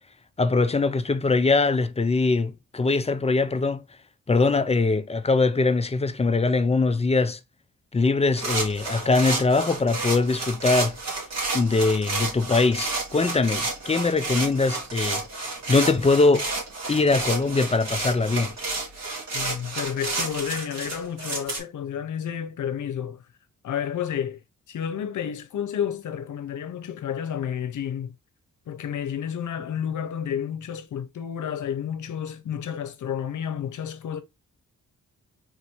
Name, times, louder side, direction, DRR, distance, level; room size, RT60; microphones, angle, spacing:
voice 1, 0.4-3.8 4.3-7.4 7.9-11.0 11.5-16.5 16.9-18.5, left 3 dB, 20° left, 0.4 m, -22 dB
sound 1, 8.4-21.6, right 3 dB, 55° right, 2.1 m, -30 dB
voice 2, 19.3-23.2 23.6-24.4 24.7-28.1 28.7-34.2, left 8 dB, 70° left, 0.7 m, -31 dB
4.0 x 2.7 x 4.4 m
cardioid pair, 105°, 31 cm